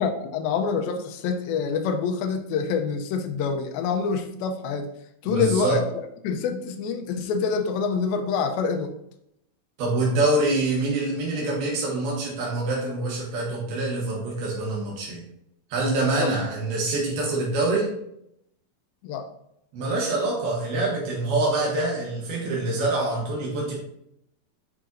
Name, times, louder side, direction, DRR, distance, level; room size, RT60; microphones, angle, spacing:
voice 1, 0.0-4.9 5.2-5.8 6.2-8.9 16.2-16.3 19.0-19.3, left 5 dB, 80° left, 5 dB, 2.5 m, -26 dB
voice 2, 5.2-5.8 9.8-15.2 15.7-17.9 19.7-23.7, right 2 dB, 85° right, -3 dB, 3.3 m, -25 dB
9.0 x 4.8 x 2.6 m, 0.76 s
omnidirectional pair, 4.3 m